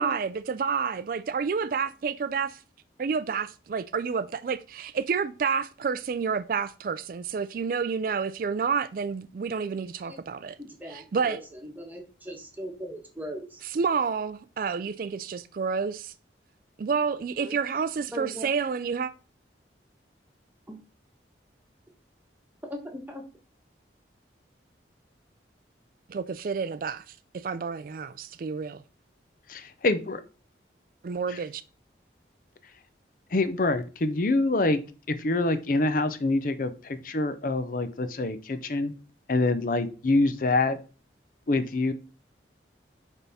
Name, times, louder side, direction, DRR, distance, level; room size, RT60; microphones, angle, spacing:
voice 1, 0.0-2.6 3.0-10.6 10.9-11.4 13.7-16.1 16.8-19.1 26.1-28.8 31.0-31.6, right 5 dB, 50° right, 0.3 m, -29 dB
voice 2, 10.6-13.6 17.4-17.6 18.1-18.5 20.7-20.8 22.7-23.3, equal, 10° right, 1.3 m, -39 dB
voice 3, 29.5-30.2 31.3-31.4 33.3-34.8 35.1-38.9 39.3-40.8 41.5-41.9, left 2 dB, 45° left, 0.6 m, -25 dB
9.5 x 3.6 x 4.1 m
head